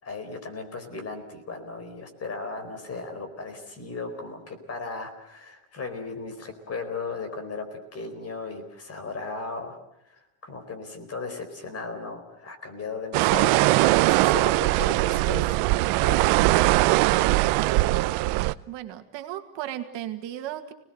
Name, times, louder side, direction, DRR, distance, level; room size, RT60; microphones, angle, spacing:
voice 1, 0.0-9.8 10.0-15.6 16.0-16.5, left 4 dB, 30° left, 7 dB, 4.5 m, -36 dB
sound 1, 13.1-18.5, right 19 dB, 90° right, 0.9 m, -21 dB
voice 2, 18.7-20.7, right 12 dB, 60° right, 6 dB, 2.1 m, -35 dB
29.5 x 19.5 x 7.9 m, 0.79 s
cardioid pair, 155°, 49 cm